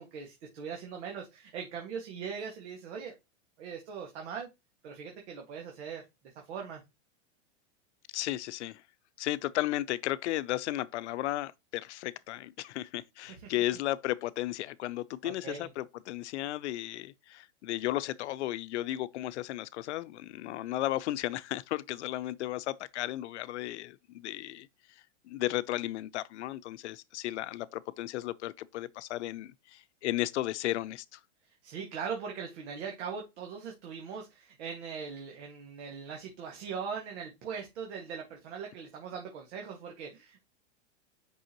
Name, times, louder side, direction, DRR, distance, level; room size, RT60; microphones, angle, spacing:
voice 1, 0.0-3.1 3.6-4.5 4.8-6.0 6.3-6.8 13.3-13.5 15.2-15.7 31.6-40.4, right 6 dB, 70° right, 1.8 m, -40 dB
voice 2, 8.1-8.8 9.2-31.2, left 15 dB, 70° left, 0.6 m, -34 dB
6.5 x 5.5 x 2.9 m
hypercardioid pair, 130°, 35 cm